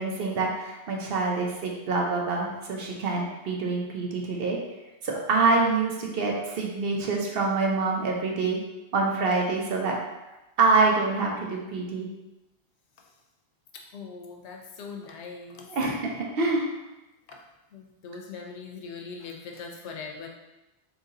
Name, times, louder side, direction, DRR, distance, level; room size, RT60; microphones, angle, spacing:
voice 1, 0.0-4.6 5.0-8.6 8.9-10.0 10.6-12.1 15.7-16.7, right 3 dB, 65° right, -1 dB, 0.8 m, -26 dB
voice 2, 13.7-15.7 17.7-20.3, left 5 dB, 80° left, 1 dB, 0.9 m, -41 dB
3.1 x 2.7 x 3.7 m, 1.0 s
omnidirectional pair, 1.1 m